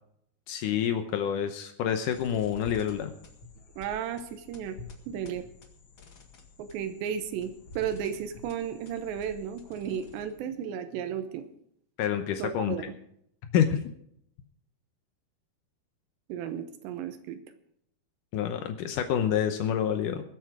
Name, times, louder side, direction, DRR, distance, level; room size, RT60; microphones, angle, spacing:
voice 1, 0.5-3.1 12.0-12.7 13.5-13.8 18.3-20.2, left 9 dB, 85° left, 7 dB, 1.8 m, -27 dB
sound 1, 2.1-10.5, left 4 dB, 45° left, 1.6 m, -49 dB
voice 2, 3.8-4.8 5.1-5.5 6.6-11.5 12.4-12.8 16.3-17.4, right 8 dB, 85° right, 8 dB, 3.2 m, -34 dB
21.0 x 8.3 x 4.9 m, 0.70 s
omnidirectional pair, 4.9 m